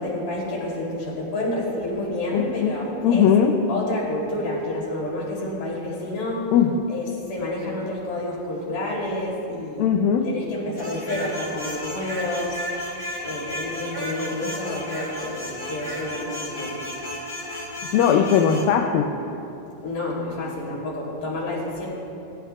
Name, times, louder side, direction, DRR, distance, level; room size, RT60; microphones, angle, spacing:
voice 1, 0.0-3.3 3.7-6.5 6.9-9.9 10.2-12.9 13.2-16.8 19.8-21.9, left 1 dB, 55° left, -4 dB, 4.6 m, -29 dB
voice 2, 2.3-2.7 3.0-3.5 6.5-6.9 9.8-10.3 17.9-19.1, left 8 dB, 80° left, 2 dB, 2.3 m, -19 dB
sound 1, 10.8-18.7, equal, 25° left, 0.6 m, -33 dB
18.0 x 18.0 x 2.4 m, 2.7 s
omnidirectional pair, 4.3 m